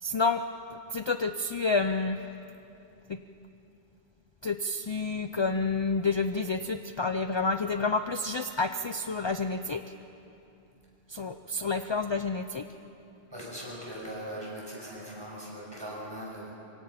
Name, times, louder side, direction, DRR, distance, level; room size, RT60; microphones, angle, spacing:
voice 1, 0.0-0.4 0.7-2.3 3.1-3.2 4.4-9.8 11.1-12.6, left 3 dB, 40° left, 8 dB, 0.4 m, -29 dB
voice 2, 13.3-16.5, equal, 20° right, -4 dB, 6.3 m, -40 dB
24.5 x 24.5 x 5.9 m, 2.8 s
omnidirectional pair, 1.2 m